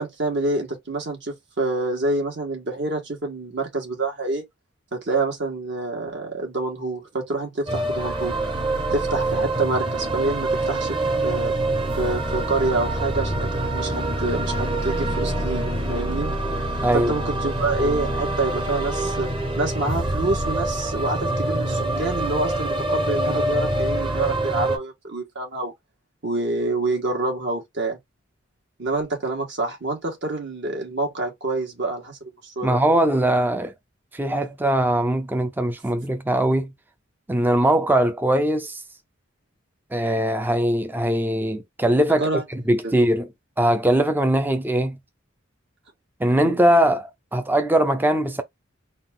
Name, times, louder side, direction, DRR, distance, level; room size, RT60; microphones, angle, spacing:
voice 1, 0.0-4.4 4.9-8.3 8.9-11.0 11.2-11.6 12.0-16.3 16.9-25.7 26.2-28.0 28.8-32.8 42.2-42.4 42.8-42.9, right 2 dB, 60° right, 1.7 m, -27 dB
sound 1, 7.7-24.8, right 1 dB, 25° right, 0.9 m, -25 dB
voice 2, 16.8-17.1 32.6-33.7 34.1-36.7 37.3-38.8 39.9-43.3 43.6-45.0 46.2-48.4, right 1 dB, 10° right, 0.5 m, -21 dB
4.0 x 2.4 x 3.6 m
head